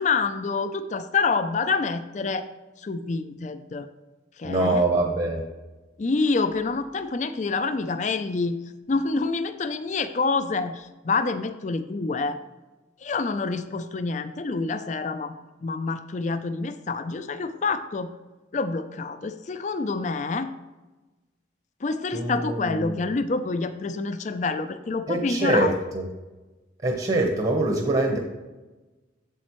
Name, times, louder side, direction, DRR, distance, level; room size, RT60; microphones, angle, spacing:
voice 1, 0.0-2.5 2.8-3.9 4.4-4.8 6.0-8.6 8.9-12.4 13.0-18.1 18.5-20.5 21.8-25.7, left 4 dB, 40° left, 10 dB, 0.4 m, -27 dB
voice 2, 4.4-5.4 22.1-23.0 25.1-26.0 26.8-28.2, right 2 dB, 35° right, 1 dB, 1.0 m, -24 dB
8.4 x 7.6 x 3.1 m, 1.1 s
head